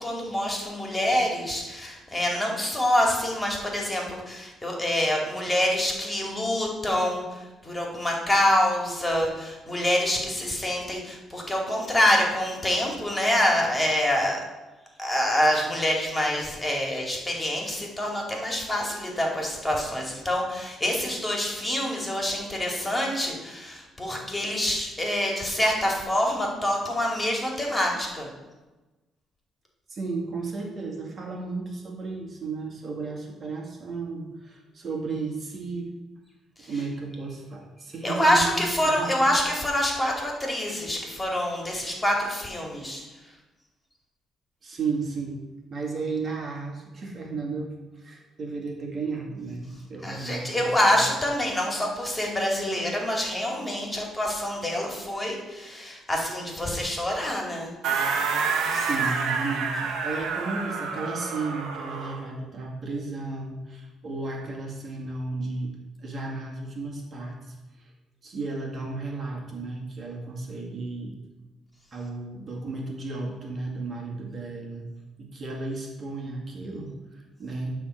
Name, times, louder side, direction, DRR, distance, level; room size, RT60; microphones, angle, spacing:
voice 1, 0.0-14.4 15.0-28.3 36.6-36.7 38.0-43.0 50.0-57.7, left 1 dB, 15° left, -1 dB, 2.4 m, -26 dB
voice 2, 29.9-35.9 36.7-38.5 38.8-39.0 44.6-45.4 45.7-47.7 47.9-51.0 58.7-65.7 66.0-67.5 68.2-71.1 71.9-74.9 75.2-77.8, right 3 dB, 50° right, -1 dB, 2.1 m, -34 dB
sound 1, 57.8-62.2, right 5 dB, 75° right, 1.2 m, -28 dB
11.0 x 3.8 x 6.4 m, 1.1 s
supercardioid pair, 75°, 0 cm